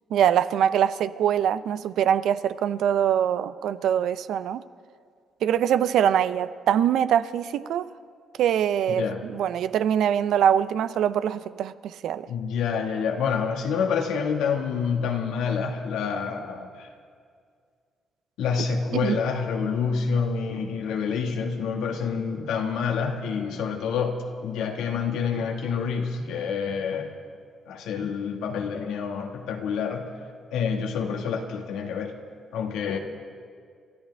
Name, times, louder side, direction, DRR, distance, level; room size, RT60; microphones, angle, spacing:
voice 1, 0.1-4.6 5.4-7.9 8.4-12.3 19.0-19.2, right 9 dB, 75° right, 0.5 m, -23 dB
voice 2, 12.3-16.9 18.4-27.1 27.7-30.1 30.5-32.1 32.5-33.0, left 6 dB, 90° left, 1.6 m, -27 dB
28.5 x 14.0 x 3.4 m
cardioid pair, 90°, 0 cm